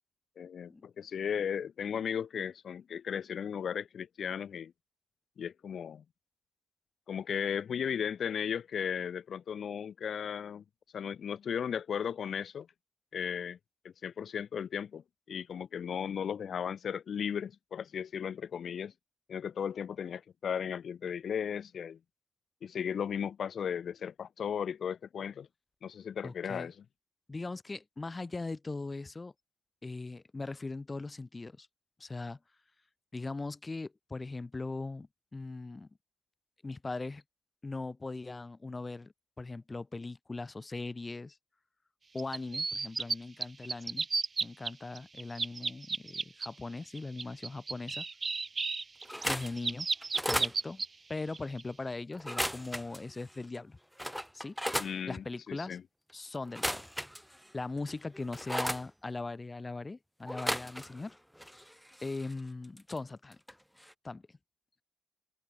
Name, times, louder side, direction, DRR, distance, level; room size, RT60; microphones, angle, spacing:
voice 1, 0.4-4.7 5.4-6.0 7.1-10.6 10.9-12.7 13.1-13.6 13.8-18.9 19.3-22.0 22.6-25.5 25.8-26.8 54.8-55.8, left 8 dB, 60° left, 2.1 m, -36 dB
voice 2, 26.2-26.7 27.3-29.3 29.8-31.7 32.0-32.4 33.1-35.9 36.6-37.2 37.6-41.4 42.1-44.1 44.4-48.0 49.2-49.9 50.2-50.8 51.1-53.8 54.3-54.6 55.1-55.8 56.1-56.9 57.5-61.2 62.0-63.4 64.0-64.2, left 3 dB, 20° left, 1.4 m, -40 dB
sound 1, 42.2-43.2 43.4-44.7 45.0-46.5 47.0-50.9 51.3-51.6, right 4 dB, 30° right, 0.3 m, -33 dB
sound 2, 49.0-49.5 50.0-50.5 52.1-53.0 53.5-53.6 54.0-54.9 56.4-57.5 57.9-58.8 60.3-61.1 61.4-63.0 63.3-63.5 63.8-63.9, equal, ahead, 1.9 m, -35 dB
open air
cardioid pair, 125°, 0 cm